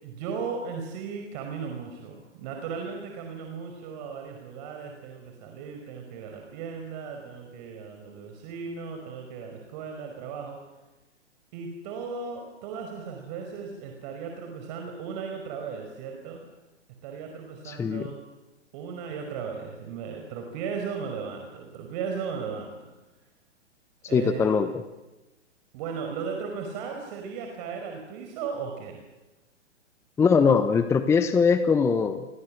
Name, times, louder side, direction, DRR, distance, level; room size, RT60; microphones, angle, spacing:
voice 1, 0.0-10.6 11.5-16.4 17.0-18.2 18.7-22.9 24.1-24.6 25.7-29.0, right 6 dB, 35° right, 3 dB, 5.2 m, -36 dB
voice 2, 17.6-18.1 24.1-24.7 30.2-32.3, left 5 dB, 5° left, 11 dB, 0.8 m, -21 dB
29.0 x 25.0 x 7.7 m, 1.1 s
figure-of-eight pair, 120°, 36 cm